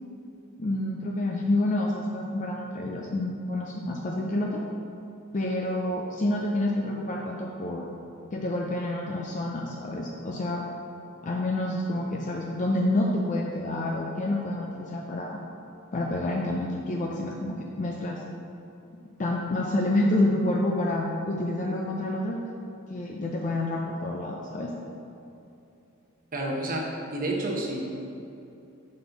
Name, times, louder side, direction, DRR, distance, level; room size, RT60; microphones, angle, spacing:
voice 1, 0.6-4.6 5.3-7.9 8.3-10.6 11.2-15.4 15.9-18.2 19.2-22.4 22.9-24.7, left 1 dB, 35° left, -1 dB, 0.4 m, -28 dB
voice 2, 26.3-26.8 27.1-27.8, right 1 dB, 40° right, -1 dB, 0.9 m, -29 dB
5.3 x 4.2 x 5.7 m, 2.8 s
head